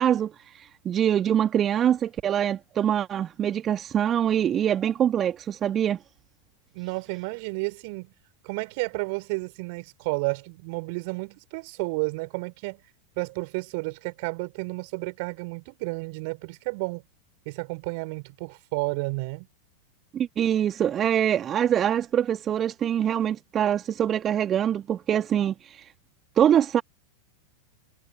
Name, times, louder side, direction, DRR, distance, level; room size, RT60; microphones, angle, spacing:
voice 1, 0.0-6.0 20.1-25.9 26.4-26.8, right 10 dB, 25° right, 1.9 m, -24 dB
voice 2, 6.7-8.1 8.4-12.8 13.2-17.0 17.5-19.5, right 29 dB, 45° right, 4.0 m, -31 dB
figure-of-eight pair, 90°, 0 cm